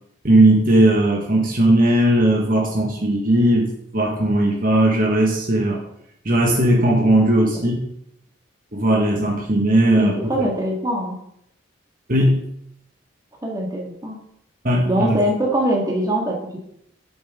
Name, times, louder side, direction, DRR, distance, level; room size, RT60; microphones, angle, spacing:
voice 1, 0.2-3.7 3.9-5.8 6.2-7.8 8.7-10.1 10.4-10.5 12.1-12.4 14.6-15.2, right 1 dB, 45° right, -1 dB, 1.7 m, -17 dB
voice 2, 10.0-11.2 13.4-14.2 14.9-16.6, equal, 20° right, -1 dB, 2.0 m, -22 dB
11.5 x 8.2 x 3.8 m, 0.73 s
head